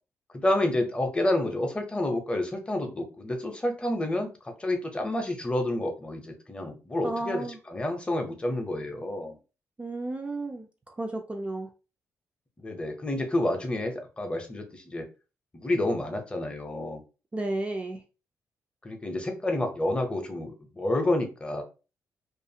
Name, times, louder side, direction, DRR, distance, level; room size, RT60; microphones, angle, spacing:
voice 1, 0.3-4.3 4.6-9.4 12.6-15.1 15.5-17.0 18.8-21.6, left 1 dB, 20° left, 0.6 m, -29 dB
voice 2, 7.0-7.6 9.8-11.7 17.3-18.0, right 2 dB, 20° right, 0.4 m, -33 dB
2.4 x 2.4 x 2.7 m
cardioid pair, 105°, 6 cm